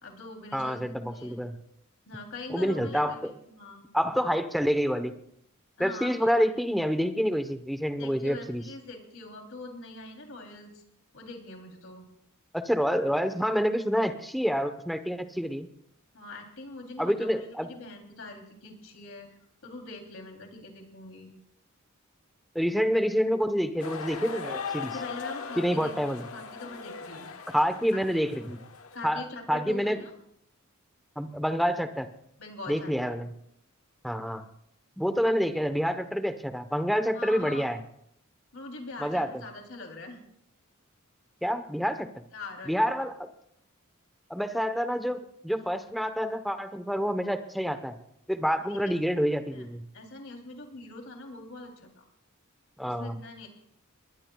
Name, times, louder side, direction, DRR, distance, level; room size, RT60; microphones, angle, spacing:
voice 1, 0.0-1.4 2.1-3.8 5.8-6.3 8.0-10.8 11.1-12.0 16.1-19.3 19.6-21.3 24.9-27.3 27.9-28.2 28.9-30.1 32.4-33.3 37.1-37.7 38.5-40.2 42.3-43.1 48.7-48.9 49.5-49.6 49.9-52.0 52.8-53.5, left 2 dB, 70° left, 2 dB, 3.2 m, -43 dB
voice 2, 0.5-1.5 2.5-3.3 3.9-5.1 5.8-8.6 12.5-15.7 17.0-17.7 22.5-24.9 25.6-26.2 27.5-28.6 29.0-30.0 31.2-32.1 32.7-33.3 34.0-34.4 35.0-37.8 39.0-39.3 41.4-42.2 42.7-43.1 44.3-48.0 48.3-49.8 52.8-53.2, equal, ahead, 8 dB, 1.0 m, -27 dB
sound 1, 23.8-29.0, left 5 dB, 90° left, 1.3 m, -39 dB
22.5 x 20.0 x 2.3 m, 0.73 s
head